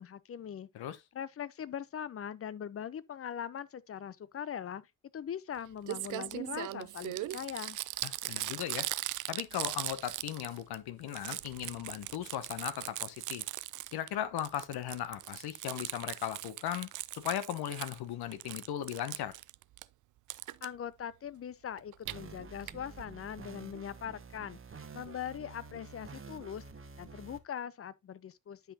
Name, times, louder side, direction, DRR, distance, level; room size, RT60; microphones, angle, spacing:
voice 1, 0.0-0.9 1.1-4.8 5.1-7.8 20.6-24.6 24.9-26.6 27.0-28.7, left 9 dB, 30° left, 0.7 m, -41 dB
Crumpling crinkling, 5.5-5.6 5.9-10.8 11.0-14.1 14.4-18.0 18.3-19.8 20.3-20.7 21.8-22.1 22.7-22.8 23.0-23.1 23.3-23.4, right 16 dB, 45° right, 0.5 m, -39 dB
voice 2, 8.0-8.9 9.3-13.4 13.9-19.3, left 11 dB, 55° left, 1.1 m, -37 dB
sound 1, 22.0-27.4, right 4 dB, 25° right, 1.3 m, -49 dB
9.7 x 5.9 x 2.8 m
figure-of-eight pair, 45°, 47 cm